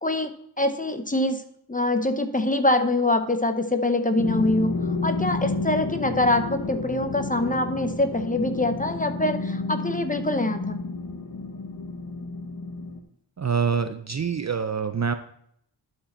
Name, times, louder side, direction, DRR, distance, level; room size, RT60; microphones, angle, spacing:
voice 1, 0.0-1.4 1.7-10.8, left 1 dB, 20° left, 8 dB, 0.7 m, -24 dB
sound 1, 4.2-13.0, left 3 dB, 50° left, 1.1 m, -31 dB
voice 2, 13.4-15.1, right 6 dB, 40° right, 10 dB, 0.4 m, -25 dB
11.5 x 4.9 x 4.3 m, 0.71 s
wide cardioid pair, 105°, 45 cm